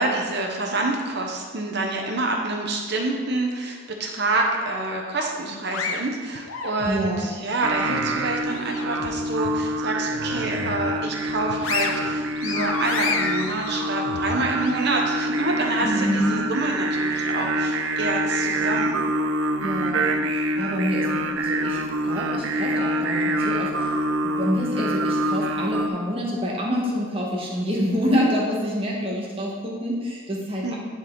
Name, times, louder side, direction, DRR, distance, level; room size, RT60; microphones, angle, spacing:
voice 1, 0.0-19.1 30.6-30.8, right 2 dB, 55° right, 2 dB, 1.0 m, -27 dB
sound 1, 5.1-7.2 7.6-9.1 9.4-9.6 10.1-10.9 11.3-14.7, left 4 dB, 85° left, 0.8 m, -31 dB
voice 2, 6.8-7.3 15.8-16.4 19.6-20.0 20.6-23.9 24.2-30.8, equal, 25° right, -3 dB, 1.3 m, -27 dB
Singing, 7.6-25.9, right 1 dB, 70° right, 0.6 m, -26 dB
10.0 x 4.2 x 3.9 m, 1.6 s
head